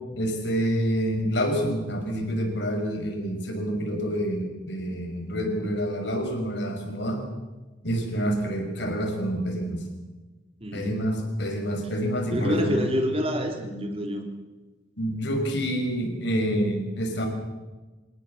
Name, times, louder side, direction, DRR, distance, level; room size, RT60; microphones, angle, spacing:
voice 1, 0.1-7.2 7.8-9.8 10.7-12.8 15.0-17.3, equal, 60° left, 3 dB, 5.8 m, -27 dB
voice 2, 10.6-10.9 12.3-14.2, equal, 30° right, 4 dB, 3.4 m, -27 dB
26.5 x 18.0 x 7.3 m, 1.2 s
head